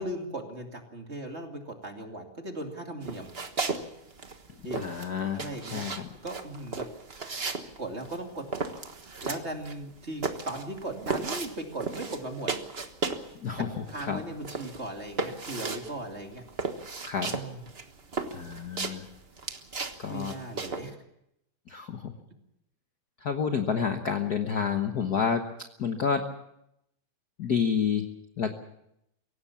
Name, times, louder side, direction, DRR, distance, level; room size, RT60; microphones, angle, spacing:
voice 1, 0.0-3.3 4.6-4.8 5.3-6.8 7.8-8.4 9.2-12.5 13.6-16.4 17.3-17.6 20.1-21.0, right 1 dB, 25° right, 3 dB, 2.4 m, -38 dB
sound 1, 3.0-3.8 4.1-13.3 13.6-20.9, right 4 dB, 80° right, 0.5 m, -35 dB
voice 2, 4.8-6.1 13.4-14.2 17.0-17.3 18.3-19.1 20.0-20.3 21.7-22.1 23.2-25.5 25.8-26.3 27.4-28.1 28.4-28.5, left 6 dB, 65° left, 6 dB, 0.9 m, -29 dB
23.5 x 17.5 x 7.2 m, 0.79 s
omnidirectional pair, 3.5 m